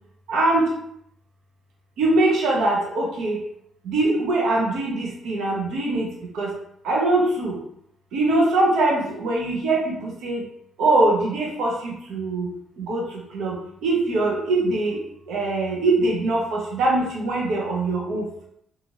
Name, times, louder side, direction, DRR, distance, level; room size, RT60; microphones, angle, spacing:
voice 1, 0.3-0.7 2.0-3.4 3.8-6.1 6.3-6.5 6.8-7.6 8.1-10.4 10.8-12.5 12.8-13.0 13.3-15.0 15.3-18.4, right 2 dB, 85° right, -2 dB, 0.8 m, -22 dB
2.7 x 2.5 x 2.9 m, 0.72 s
cardioid pair, 90°, 0 cm